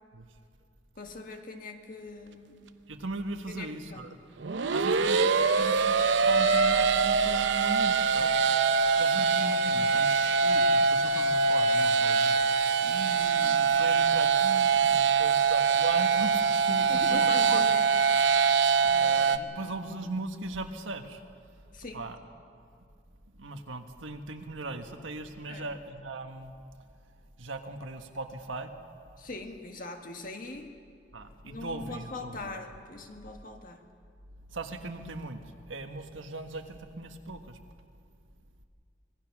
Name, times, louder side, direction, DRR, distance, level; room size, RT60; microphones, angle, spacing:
voice 1, 1.0-2.7 3.5-4.2 9.2-9.3 16.7-17.8 18.8-19.3 21.7-22.0 25.5-25.7 29.2-30.7 31.4-33.8, left 2 dB, 45° left, 4 dB, 1.7 m, -41 dB
voice 2, 2.9-4.2 4.7-8.4 9.0-17.7 18.7-21.2 21.9-22.2 23.4-26.5 27.4-28.7 31.1-32.5 34.5-37.6, right 2 dB, 85° right, 5 dB, 1.5 m, -38 dB
sound 1, 4.4-19.4, right 5 dB, 65° right, 0.7 m, -24 dB
25.5 x 19.0 x 6.1 m, 2.2 s
head